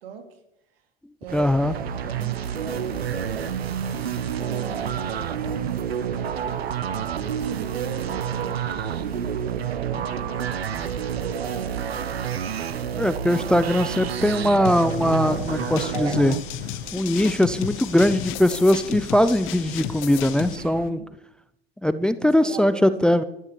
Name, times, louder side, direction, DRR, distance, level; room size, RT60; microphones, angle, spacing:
voice 1, 0.0-0.4 1.2-3.6 4.4-6.6 7.1-10.5 11.0-12.2 20.5-21.1 22.2-23.2, right 6 dB, 75° right, 6 dB, 3.2 m, -39 dB
voice 2, 1.3-1.8 13.0-16.4 16.9-21.0 21.8-23.2, left 1 dB, 5° left, 14 dB, 0.5 m, -21 dB
sound 1, 1.3-20.9, right 7 dB, 30° right, 1.3 m, -41 dB
sound 2, 1.6-16.4, right 8 dB, 90° right, 1.0 m, -29 dB
sound 3, 14.6-20.6, left 16 dB, 40° left, 0.9 m, -33 dB
13.5 x 11.5 x 6.9 m, 0.82 s
hypercardioid pair, 100°, 30 cm